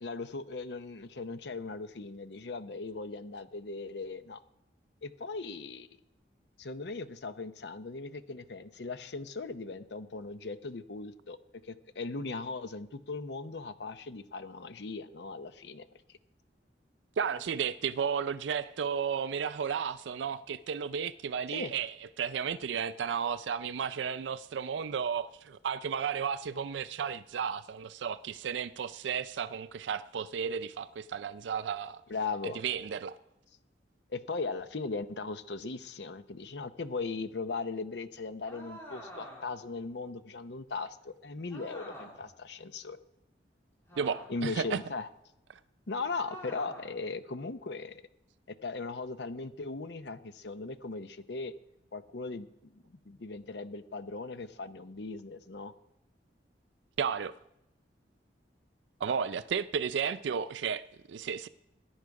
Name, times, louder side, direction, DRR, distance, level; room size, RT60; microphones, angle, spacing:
voice 1, 0.0-4.4 5.0-5.9 6.6-11.4 11.6-15.9 21.5-21.7 32.1-32.6 34.1-43.0 44.3-45.1 45.9-48.0 48.6-51.5 51.9-52.5 52.7-55.7, left 3 dB, 75° left, 0.7 m, -38 dB
voice 2, 17.2-32.0 32.4-33.1 44.0-44.8 57.0-57.3 59.0-61.5, right 7 dB, 85° right, 0.4 m, -33 dB
sound 1, 38.4-39.7 41.5-42.3 43.9-44.5 46.2-47.0, equal, 15° left, 3.1 m, -47 dB
16.0 x 10.5 x 4.8 m
head